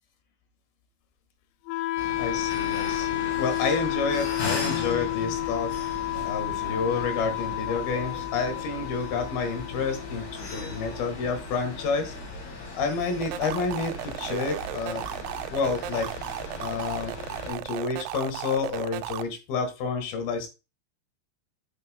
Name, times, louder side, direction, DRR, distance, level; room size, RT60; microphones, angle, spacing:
Wind instrument woodwind instrument, 1.7-11.7, left 16 dB, 85° left, 2.8 m, -31 dB
sound 1, 2.0-17.5, left 3 dB, 45° left, 3.7 m, -38 dB
voice 1, 2.2-5.7 6.2-12.1 12.7-15.0 15.5-16.1 16.6-17.1 17.4-20.5, left 4 dB, 65° left, 7 dB, 3.0 m, -29 dB
sound 2, 13.2-19.2, right 13 dB, 90° right, 3.0 m, -35 dB
8.7 x 7.8 x 2.2 m, 0.27 s
omnidirectional pair, 5.3 m